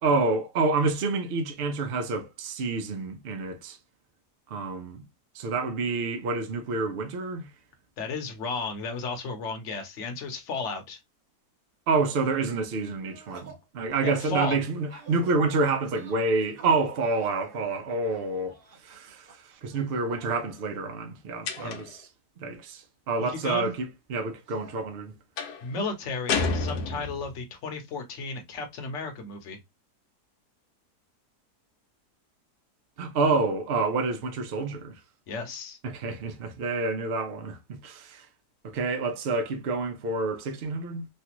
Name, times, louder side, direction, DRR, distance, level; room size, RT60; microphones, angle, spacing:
voice 1, 0.0-3.8 4.5-5.0 5.3-7.5 11.9-22.1 22.4-25.1 33.0-35.0 35.8-38.3 38.6-41.1, right 3 dB, 75° right, 0.5 m, -28 dB
voice 2, 8.0-11.0 14.0-14.6 21.6-21.8 23.3-23.7 25.6-29.6 35.3-35.8, left 3 dB, 55° left, 1.0 m, -34 dB
sound 1, 13.0-13.7 14.1-19.3 19.7-20.6 21.2-21.8 22.2-22.3 22.5-23.4 24.5-24.7, right 4 dB, 45° right, 0.8 m, -50 dB
sound 2, 21.5-22.0 25.4-25.7 26.3-27.4, left 4 dB, 75° left, 1.2 m, -29 dB
3.2 x 2.4 x 2.8 m
omnidirectional pair, 1.8 m